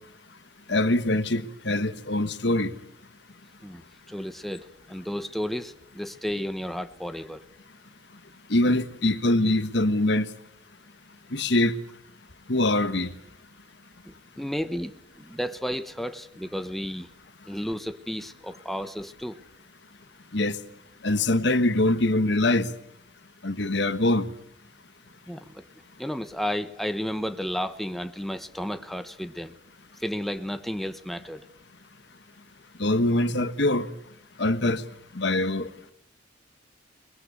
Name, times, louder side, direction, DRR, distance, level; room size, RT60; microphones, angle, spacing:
voice 1, 0.7-2.7 8.5-10.3 11.3-11.8 12.5-13.1 20.3-20.6 21.0-22.7 23.4-24.3 32.8-33.9 34.4-34.8 35.1-35.7, left 2 dB, 60° left, 1.4 m, -23 dB
voice 2, 3.6-7.5 14.0-14.9 15.2-17.1 17.5-19.4 25.3-25.6 26.0-29.5 30.0-31.5, equal, ahead, 0.9 m, -32 dB
23.5 x 22.0 x 8.4 m
head